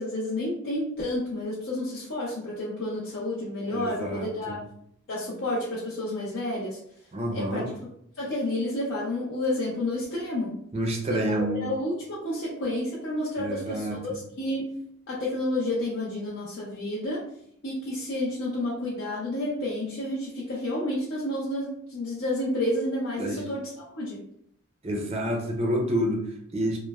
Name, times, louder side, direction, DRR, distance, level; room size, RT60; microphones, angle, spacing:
voice 1, 0.0-4.6 5.1-6.8 7.3-7.6 8.2-10.6 11.1-11.4 11.6-14.1 14.4-14.8 15.1-17.2 17.6-24.2, left 1 dB, 60° left, -7 dB, 0.6 m, -30 dB
voice 2, 3.7-4.6 7.1-7.7 10.7-11.7 13.4-14.2 23.2-23.5 24.8-26.8, equal, 30° right, 1 dB, 0.4 m, -29 dB
2.9 x 2.0 x 2.3 m, 0.70 s
head